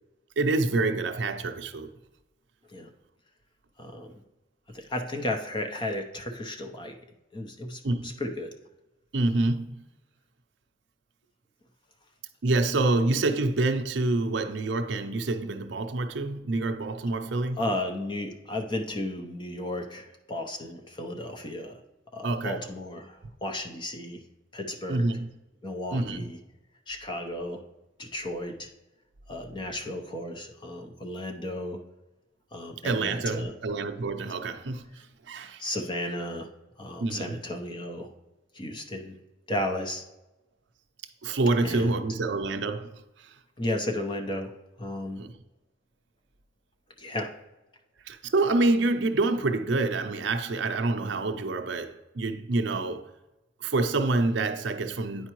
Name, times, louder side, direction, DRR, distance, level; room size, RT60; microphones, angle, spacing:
voice 1, 0.4-1.9 7.8-8.1 9.1-9.7 12.4-17.7 22.2-22.6 24.9-25.3 25.9-26.3 32.8-35.6 37.0-37.4 41.2-42.9 43.2-43.4 45.2-45.3 48.1-53.1 53.6-55.3, right 2 dB, 65° right, 0.5 m, -27 dB
voice 2, 3.8-4.1 4.7-6.9 7.3-8.5 17.6-21.8 22.1-24.2 24.5-25.1 25.6-26.4 26.9-27.6 28.0-28.7 29.3-31.8 32.5-33.5 35.6-36.5 36.8-38.1 38.5-39.2 39.5-40.0 41.6-42.1 43.6-44.5 44.8-45.2 47.0-47.3, left 1 dB, 25° left, 0.6 m, -34 dB
9.9 x 4.5 x 3.0 m
head